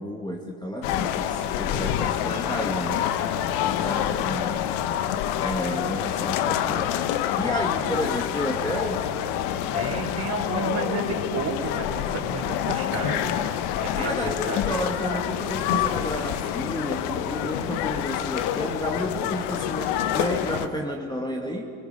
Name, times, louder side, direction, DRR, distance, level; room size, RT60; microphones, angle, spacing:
voice 1, 0.0-3.1 3.4-4.7 5.4-7.0 7.3-9.1 14.0-21.7, equal, 10° left, 2 dB, 1.8 m, -31 dB
sound 1, 0.8-20.7, left 10 dB, 65° left, 1.1 m, -27 dB
voice 2, 9.7-13.3 13.8-14.7, right 5 dB, 35° right, 1 dB, 4.3 m, -32 dB
25.5 x 20.5 x 5.4 m, 2.6 s
hypercardioid pair, 80°, 42 cm